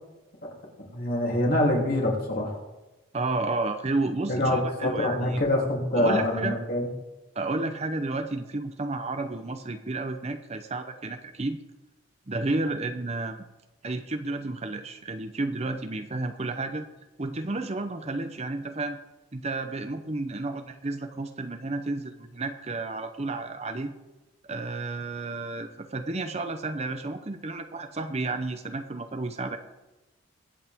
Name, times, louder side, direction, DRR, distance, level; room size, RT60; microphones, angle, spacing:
voice 1, 0.9-2.6 4.3-6.9, left 1 dB, 45° left, -1 dB, 3.2 m, -25 dB
voice 2, 3.1-5.4 5.9-6.6 7.3-11.6 12.3-13.4 13.8-16.9 17.2-19.0 19.3-23.9 24.5-29.6, right 2 dB, 30° right, 8 dB, 0.7 m, -31 dB
23.0 x 8.6 x 3.6 m, 1.1 s
head